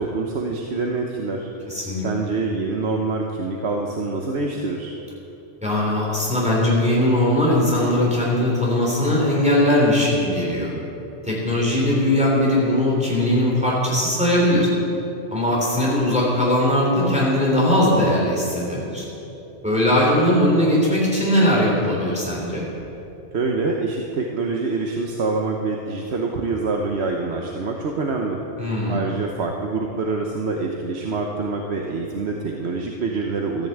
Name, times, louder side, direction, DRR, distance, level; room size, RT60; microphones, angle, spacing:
voice 1, 0.0-1.5 2.0-4.9 23.3-28.4 28.9-33.7, right 3 dB, 65° right, 1 dB, 1.3 m, -25 dB
voice 2, 1.7-2.1 5.6-10.7 11.3-14.7 15.3-19.0 19.6-22.6 28.6-29.0, left 1 dB, 5° right, -5 dB, 3.4 m, -19 dB
14.5 x 10.5 x 8.0 m, 3.0 s
omnidirectional pair, 1.2 m